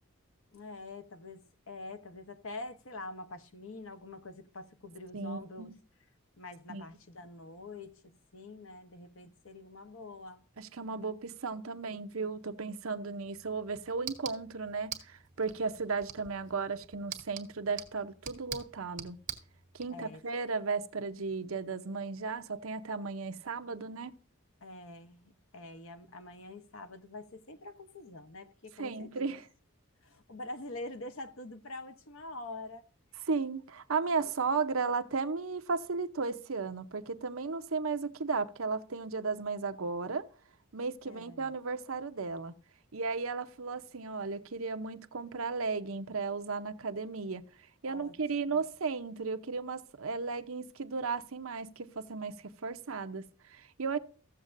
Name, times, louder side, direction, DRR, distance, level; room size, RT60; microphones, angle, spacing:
voice 1, 0.5-5.7 6.4-10.5 19.9-20.2 24.6-29.3 30.0-32.9 41.1-41.5 47.9-48.2 48.5-48.6, left 2 dB, 65° left, 1.0 m, -45 dB
voice 2, 5.1-5.7 6.7-6.8 10.6-19.2 19.7-24.1 28.8-29.4 33.3-40.3 40.7-42.5 42.9-47.4 47.8-54.0, right 4 dB, 70° right, 0.8 m, -35 dB
sound 1, 13.2-19.9, right 8 dB, 35° right, 1.8 m, -46 dB
15.5 x 7.3 x 2.6 m
head